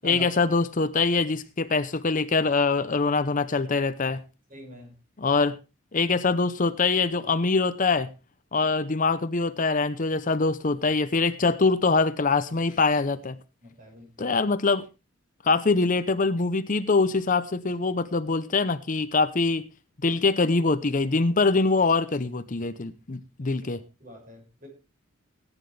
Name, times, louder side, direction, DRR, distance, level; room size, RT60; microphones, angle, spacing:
voice 1, 0.0-4.2 5.2-5.6 5.9-8.1 8.5-13.4 14.2-14.8 15.4-19.6 20.0-23.8, left 4 dB, 40° left, 12 dB, 0.7 m, -24 dB
voice 2, 4.5-4.9 13.6-14.4 24.0-24.7, equal, 40° right, 2 dB, 6.3 m, -44 dB
18.0 x 10.0 x 3.3 m, 0.29 s
head